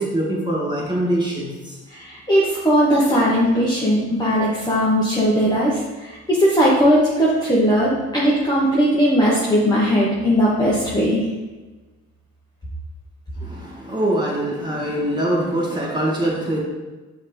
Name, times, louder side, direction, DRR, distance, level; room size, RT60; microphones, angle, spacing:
voice 1, 0.0-1.7 13.4-16.6, right 1 dB, 15° right, -5 dB, 1.9 m, -23 dB
voice 2, 1.9-11.2, equal, 15° left, -7 dB, 1.2 m, -18 dB
5.7 x 3.2 x 5.2 m, 1.2 s
cardioid pair, 90°, 30 cm